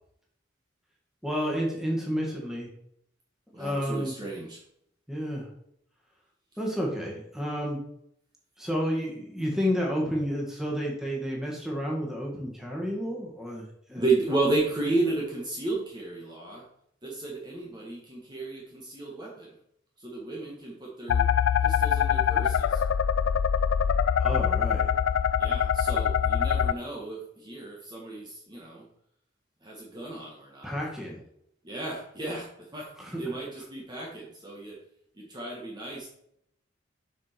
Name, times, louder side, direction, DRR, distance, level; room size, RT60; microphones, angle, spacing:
voice 1, 1.2-2.7 3.6-4.2 5.1-5.5 6.6-7.8 8.6-14.0 24.2-24.9 30.6-31.2 33.0-33.3, equal, ahead, -2 dB, 2.0 m, -31 dB
voice 2, 3.5-4.6 13.9-16.6 17.0-19.5 20.0-21.3 21.6-22.8 25.4-28.8 29.6-30.7 31.6-32.9 33.2-34.8 35.2-36.1, right 2 dB, 20° right, -3 dB, 1.6 m, -33 dB
sound 1, 21.1-26.7, left 8 dB, 85° left, 0.3 m, -24 dB
7.5 x 6.2 x 4.6 m, 0.72 s
head